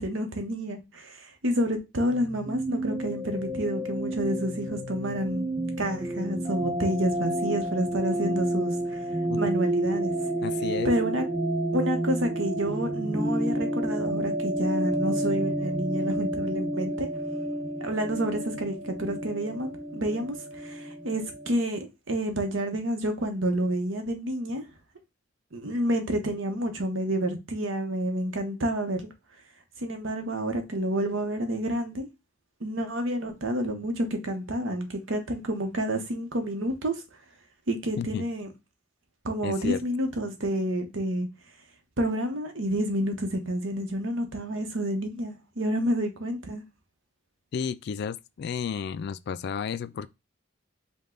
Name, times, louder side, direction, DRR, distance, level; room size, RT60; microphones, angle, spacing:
voice 1, 0.0-5.5 5.8-9.0 9.4-10.1 10.8-11.2 11.7-17.1 17.8-20.3 20.6-24.6 25.5-29.1 29.8-32.1 32.6-36.9 37.7-38.5 39.2-41.3 42.0-46.6, right 1 dB, 85° right, 1.0 m, -29 dB
sound 1, 2.0-21.5, right 1 dB, 35° right, 1.5 m, -30 dB
voice 2, 10.4-10.9 38.0-38.2 39.4-39.8 47.5-50.1, left 6 dB, 55° left, 0.3 m, -32 dB
5.2 x 2.3 x 3.8 m
head